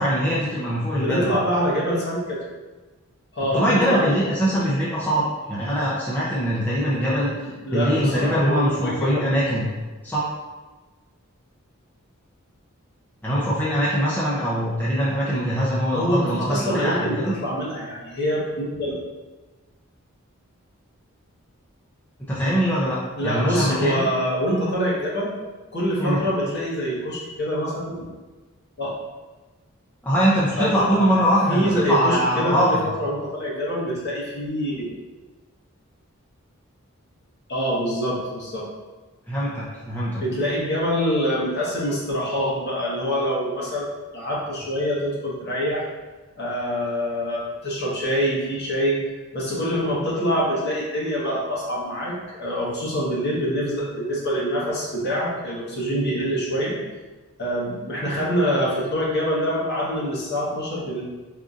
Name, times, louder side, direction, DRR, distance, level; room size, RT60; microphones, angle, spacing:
voice 1, 0.0-1.3 3.5-9.6 10.0-10.3 13.2-17.3 22.3-23.0 23.2-24.1 26.0-26.2 30.0-32.9 39.3-40.2, equal, 10° left, -9 dB, 0.5 m, -22 dB
voice 2, 1.0-2.4 3.3-4.1 7.4-9.2 15.9-19.0 23.2-25.3 25.7-28.1 28.8-28.9 30.6-31.1 31.5-34.9 37.5-38.7 40.2-43.8 44.1-45.8 46.4-49.0 49.3-56.8 57.4-61.0, equal, 50° left, -5 dB, 1.0 m, -25 dB
4.8 x 2.6 x 2.4 m, 1.2 s
head